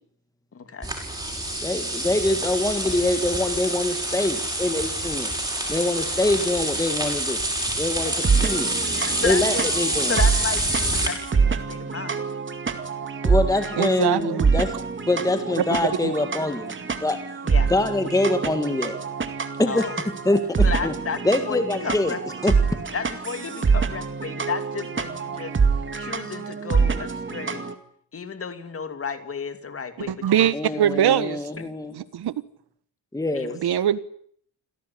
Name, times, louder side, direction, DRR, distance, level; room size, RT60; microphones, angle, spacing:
voice 1, 0.5-0.9 9.0-9.7 10.1-12.2 17.4-17.7 19.7-19.9 20.6-21.2 21.5-22.2 22.9-25.5 26.0-27.7 28.1-30.2 30.7-30.8 31.2-31.7 33.3-33.6, left 6 dB, 35° left, 9 dB, 2.6 m, -32 dB
sound 1, 0.8-11.1, right 1 dB, 10° right, 6.5 m, -27 dB
voice 2, 1.6-5.3 5.7-7.4 7.8-8.8 9.2-10.2 13.2-14.7 15.1-17.2 17.7-19.0 19.6-19.9 20.3-20.9 21.2-22.2 22.4-22.6 30.5-32.0 33.1-33.5, left 2 dB, 10° left, 8 dB, 1.8 m, -24 dB
sound 2, 8.0-27.7, right 5 dB, 30° right, 2.3 m, -26 dB
voice 3, 13.8-14.5 15.6-15.7 16.0-16.1 30.0-31.5 31.9-32.3 33.6-34.0, right 10 dB, 75° right, 16 dB, 1.5 m, -22 dB
27.5 x 17.5 x 10.0 m, 0.64 s
wide cardioid pair, 175°, 39 cm